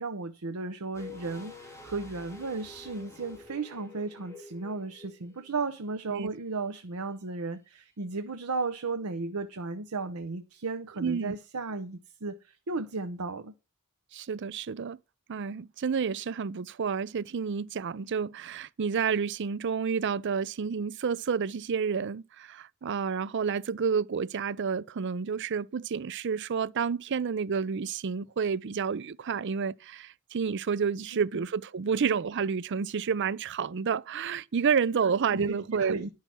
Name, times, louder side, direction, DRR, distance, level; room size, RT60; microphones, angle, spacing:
voice 1, 0.0-13.5 31.1-31.4 35.3-36.1, right 3 dB, 85° right, 0.8 m, -35 dB
sound 1, 0.9-5.8 6.0-6.1, left 4 dB, 15° left, 2.6 m, -48 dB
voice 2, 11.0-11.4 14.1-15.0 15.3-36.1, right 6 dB, 55° right, 0.5 m, -30 dB
11.0 x 5.7 x 6.1 m
head